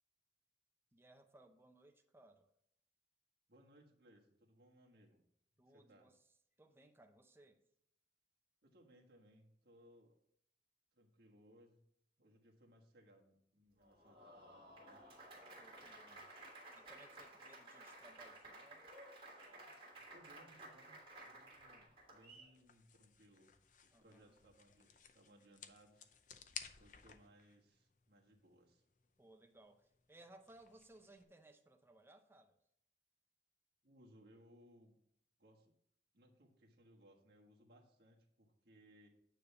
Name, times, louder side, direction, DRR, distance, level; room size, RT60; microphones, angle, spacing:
voice 1, 0.9-2.5 5.6-6.2 6.6-7.6 15.6-16.3 16.7-18.9 23.9-24.3 29.2-32.6, right 2 dB, 15° right, 7 dB, 0.6 m, -63 dB
voice 2, 3.5-5.2 5.7-6.1 8.6-10.1 10.9-11.8 12.2-15.0 20.1-23.5 23.8-26.1 26.8-28.8 33.8-35.0 35.4-35.7 36.1-39.1, equal, 60° right, 0 dB, 1.4 m, -66 dB
Applause, 13.8-22.5, right 2 dB, 30° right, 2.2 m, -56 dB
sound 1, 20.0-31.2, left 7 dB, 45° left, 0.6 m, -58 dB
9.1 x 3.4 x 6.8 m, 0.73 s
head